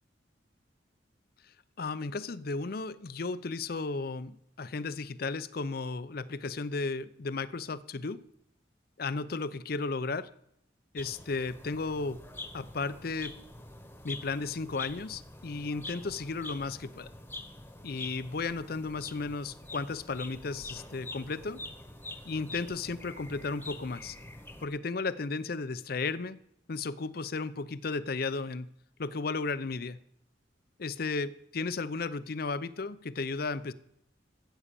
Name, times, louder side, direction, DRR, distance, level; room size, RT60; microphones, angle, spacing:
voice 1, 1.8-8.2 9.0-10.3 10.9-12.2 12.5-13.3 14.0-17.1 17.8-21.6 22.3-24.2 24.6-26.4 26.7-28.7 29.0-30.0 30.8-33.7, left 4 dB, 55° left, 16 dB, 0.6 m, -34 dB
sound 1, 11.0-24.7, left 2 dB, 10° left, 1.2 m, -46 dB
13.5 x 8.6 x 6.9 m, 0.74 s
head